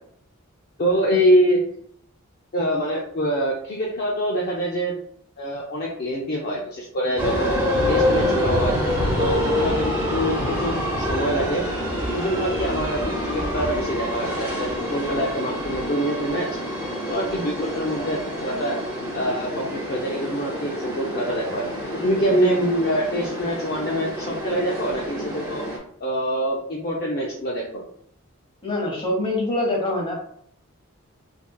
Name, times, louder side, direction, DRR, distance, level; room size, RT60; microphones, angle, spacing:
voice 1, 0.8-1.6 2.5-4.9 5.4-8.7 9.2-11.6 12.0-16.5 17.1-18.8 19.1-21.6 21.9-25.6 26.0-27.8, equal, 45° left, -3 dB, 0.5 m, -25 dB
sound 1, 7.2-25.8, equal, 10° right, 0.9 m, -26 dB
voice 2, 28.6-30.2, left 1 dB, 25° left, -1 dB, 1.0 m, -24 dB
3.5 x 3.2 x 2.2 m, 0.66 s
head